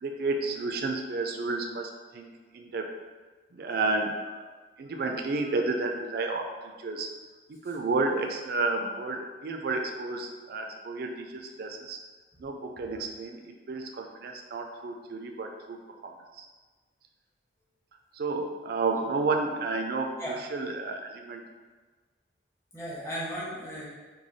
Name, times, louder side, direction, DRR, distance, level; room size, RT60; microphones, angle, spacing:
voice 1, 0.0-2.9 3.5-4.4 4.8-6.5 6.8-7.1 7.5-12.0 12.4-16.1 16.4-16.5 18.2-20.1 20.5-21.4, right 3 dB, 55° right, 3 dB, 0.4 m, -31 dB
voice 2, 22.7-23.9, equal, 15° left, -8 dB, 0.8 m, -36 dB
3.1 x 2.3 x 4.0 m, 1.4 s
head